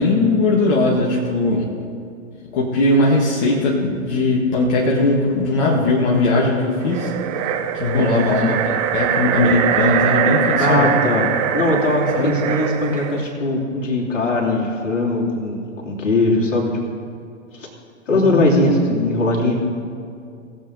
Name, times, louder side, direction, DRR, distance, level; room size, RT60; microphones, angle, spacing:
voice 1, 0.0-1.7 2.5-7.1 7.7-10.9 12.1-12.3 18.1-18.7, left 2 dB, 40° left, -4 dB, 1.9 m, -19 dB
sound 1, 6.8-13.2, right 8 dB, 30° right, 0.7 m, -22 dB
voice 2, 7.9-8.2 10.6-11.3 11.5-16.7 17.5-17.7 18.1-19.6, left 2 dB, 65° left, -3 dB, 3.1 m, -20 dB
19.5 x 7.5 x 3.9 m, 2.4 s
figure-of-eight pair, 115°, 39 cm